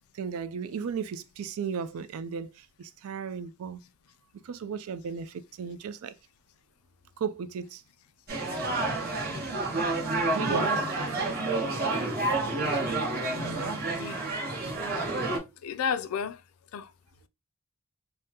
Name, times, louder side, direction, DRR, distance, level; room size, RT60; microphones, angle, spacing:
voice 1, 0.0-3.8 4.4-6.1 7.2-7.8 10.3-10.9, right 6 dB, 75° right, 0.4 m, -35 dB
sound 1, 8.3-15.4, right 2 dB, 45° right, 0.9 m, -29 dB
voice 2, 13.3-14.2 15.6-16.4 16.7-16.9, left 6 dB, 75° left, 0.3 m, -33 dB
3.5 x 2.0 x 2.7 m
head